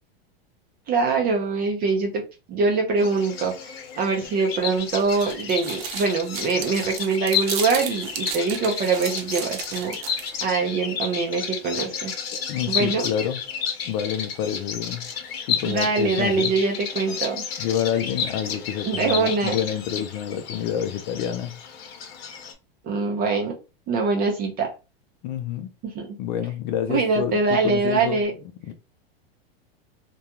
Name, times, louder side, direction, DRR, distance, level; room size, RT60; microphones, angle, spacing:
voice 1, 0.9-2.2 2.5-10.0 10.4-12.1 12.7-13.1 15.6-17.4 18.9-19.6 22.8-23.6 23.9-24.7 25.8-26.1 26.9-28.3, right 4 dB, 30° right, 0.6 m, -23 dB
Bird vocalization bird call bird song, 3.0-22.5, left 7 dB, 75° left, 0.8 m, -32 dB
sound 1, 4.8-10.4, right 8 dB, 70° right, 0.7 m, -34 dB
voice 2, 12.5-13.4 13.9-15.1 15.5-16.5 17.6-21.6 25.2-25.7 26.2-28.2 28.6-28.7, left 9 dB, 50° left, 0.4 m, -28 dB
2.3 x 2.3 x 2.8 m
supercardioid pair, 130°, 30 cm